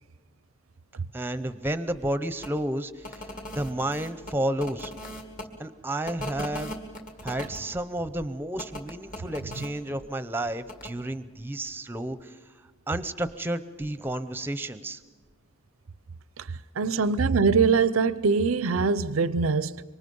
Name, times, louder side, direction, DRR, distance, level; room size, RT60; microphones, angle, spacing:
voice 1, 1.1-3.3 3.5-4.9 5.6-6.7 7.2-12.4 12.9-15.0, right 1 dB, 10° right, 0.7 m, -31 dB
sound 1, 2.4-2.5 3.0-5.4 6.0-7.6 8.6-9.7 10.7-10.9, left 1 dB, 40° left, 2.2 m, -38 dB
voice 2, 16.8-19.8, right 5 dB, 85° right, 0.6 m, -23 dB
26.0 x 24.0 x 5.4 m
head